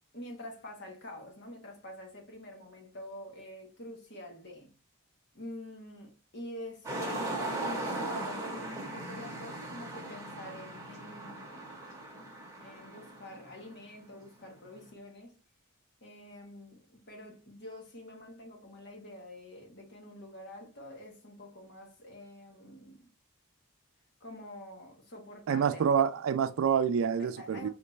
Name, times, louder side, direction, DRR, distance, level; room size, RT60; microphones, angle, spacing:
voice 1, 0.1-4.7 5.3-11.7 12.6-15.4 16.0-23.1 24.2-25.9 27.2-27.7, left 1 dB, 50° left, 1.2 m, -47 dB
sound 1, 6.8-13.9 14.5-14.8, right 2 dB, 15° right, 1.0 m, -38 dB
voice 2, 25.5-27.7, right 7 dB, 70° right, 0.3 m, -27 dB
3.3 x 3.2 x 4.0 m
head